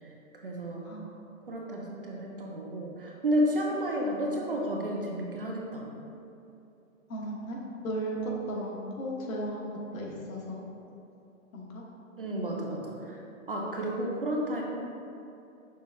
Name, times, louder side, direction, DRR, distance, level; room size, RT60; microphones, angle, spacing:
voice 1, 0.0-0.9 1.4-5.9 12.2-14.6, equal, 45° right, -1 dB, 0.4 m, -32 dB
voice 2, 7.1-10.6 11.5-11.8, right 1 dB, 75° left, -2 dB, 1.2 m, -35 dB
6.1 x 2.3 x 3.4 m, 2.8 s
hypercardioid pair, 175°, 42 cm